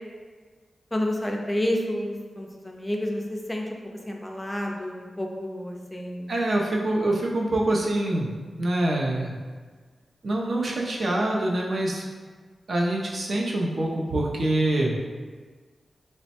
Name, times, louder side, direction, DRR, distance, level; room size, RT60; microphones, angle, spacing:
voice 1, 0.9-3.6 4.1-6.3, left 1 dB, 10° left, 0 dB, 0.4 m, -30 dB
voice 2, 6.3-8.3 8.6-9.3 10.2-12.0 12.7-14.9, right 1 dB, 55° right, -2 dB, 0.5 m, -25 dB
3.1 x 2.1 x 4.2 m, 1.5 s
wide cardioid pair, 155°, 0 cm